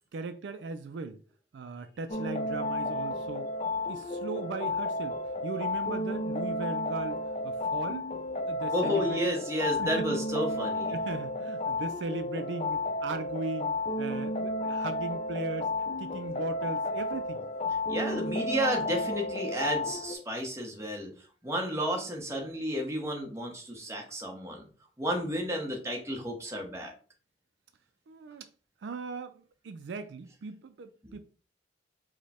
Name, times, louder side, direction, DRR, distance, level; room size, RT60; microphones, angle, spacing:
voice 1, 0.1-1.2 1.5-3.5 3.9-8.1 8.5-9.2 9.8-10.2 10.8-15.7 16.0-17.4 28.1-28.5 28.8-31.2, right 3 dB, 70° right, 0.4 m, -38 dB
sound 1, 2.1-20.1, left 2 dB, 35° left, 0.5 m, -32 dB
voice 2, 8.7-10.9 17.9-21.1 21.4-24.7 25.0-26.9 31.0-31.1, equal, 15° right, 0.9 m, -32 dB
4.9 x 2.1 x 4.1 m
head